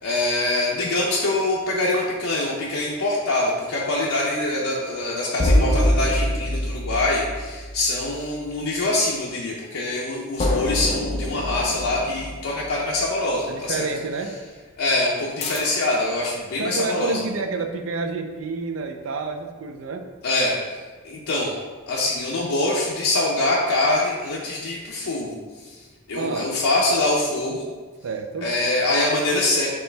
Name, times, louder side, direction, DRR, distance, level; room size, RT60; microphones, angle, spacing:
voice 1, 0.0-13.9 14.8-17.2 20.2-20.5 21.0-21.6 21.9-25.4 25.6-25.8 26.1-27.7 28.4-29.7, left 2 dB, 85° left, -4 dB, 0.6 m, -24 dB
sound 1, 5.4-8.2 10.4-13.1 15.4-16.0, left 1 dB, 30° left, 0.5 m, -24 dB
voice 2, 13.5-14.4 16.6-20.1 26.2-26.5 28.0-28.5, right 3 dB, 65° right, 6 dB, 0.4 m, -29 dB
4.4 x 3.1 x 3.3 m, 1.4 s
head